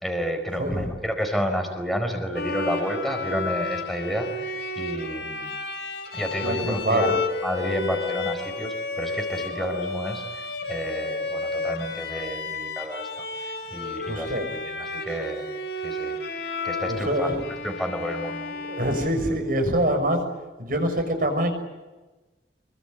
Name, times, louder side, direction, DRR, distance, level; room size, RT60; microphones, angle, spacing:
voice 1, 0.0-5.5 6.1-7.2 7.4-17.4 17.6-18.5, equal, ahead, 4 dB, 4.8 m, -31 dB
voice 2, 0.6-0.9 6.4-7.1 14.1-14.5 16.9-17.3 18.5-20.2 20.6-21.5, right 1 dB, 55° right, 5 dB, 6.5 m, -25 dB
Bowed string instrument, 2.3-19.8, left 3 dB, 65° left, 4.1 m, -32 dB
26.5 x 23.5 x 9.3 m, 1.1 s
head